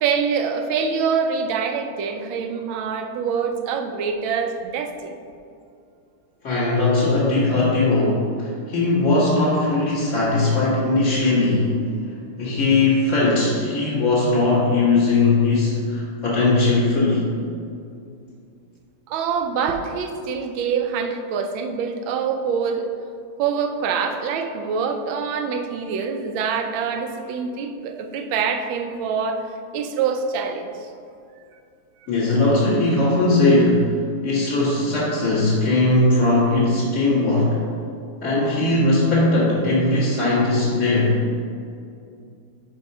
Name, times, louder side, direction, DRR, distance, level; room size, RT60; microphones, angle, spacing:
voice 1, 0.0-5.1 19.1-22.9 23.4-29.4 29.7-30.9, right 6 dB, 75° right, 5 dB, 1.4 m, -25 dB
voice 2, 6.4-11.8 12.4-17.3 32.1-34.0 34.2-37.6 38.2-41.2, left 2 dB, 35° left, -13 dB, 2.1 m, -19 dB
5.5 x 5.3 x 5.4 m, 2.4 s
omnidirectional pair, 2.3 m